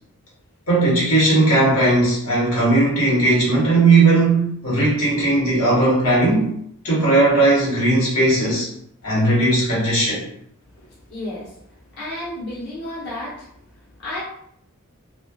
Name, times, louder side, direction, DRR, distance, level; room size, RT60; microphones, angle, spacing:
voice 1, 0.7-6.5 6.8-8.7 9.0-10.2, right 2 dB, 85° left, -5 dB, 1.3 m, -17 dB
voice 2, 10.7-14.2, left 1 dB, 50° left, -7 dB, 0.9 m, -33 dB
3.2 x 2.2 x 2.3 m, 0.69 s
head